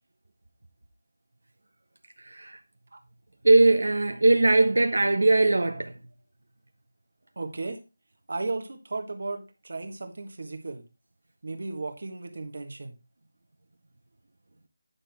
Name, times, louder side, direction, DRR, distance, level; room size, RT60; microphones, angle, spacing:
voice 1, 2.3-2.6 3.4-5.9, right 2 dB, 75° right, 1.1 m, -20 dB
voice 2, 7.3-7.8 8.3-10.8 11.4-12.9, right 3 dB, 45° right, 1.5 m, -35 dB
9.8 x 6.1 x 3.5 m
figure-of-eight pair, 180°, 0 cm